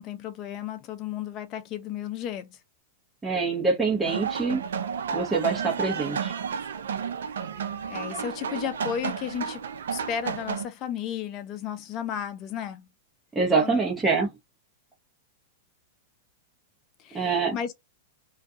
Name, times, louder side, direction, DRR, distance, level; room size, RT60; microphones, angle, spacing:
voice 1, 0.0-2.6 7.9-9.6 9.9-12.9 13.6-13.8 17.0-17.7, left 9 dB, 40° left, 0.6 m, -34 dB
voice 2, 3.2-4.6 5.1-6.3 13.3-14.3 17.1-17.6, right 4 dB, 10° right, 0.7 m, -25 dB
sound 1, 4.0-10.6, right 6 dB, 80° right, 0.4 m, -32 dB
2.3 x 2.2 x 2.7 m
hypercardioid pair, 110°, 0 cm